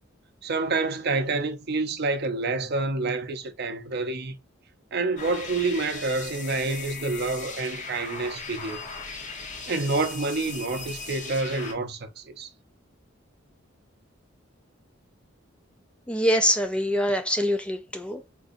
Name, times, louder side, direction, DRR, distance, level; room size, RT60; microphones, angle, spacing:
voice 1, 0.4-4.4 4.9-8.8 9.7-12.5, right 3 dB, 55° right, 0.6 m, -28 dB
sound 1, 5.2-11.7, left 4 dB, 40° left, 0.9 m, -38 dB
voice 2, 16.1-18.3, equal, 5° left, 0.3 m, -24 dB
3.9 x 2.6 x 2.5 m
head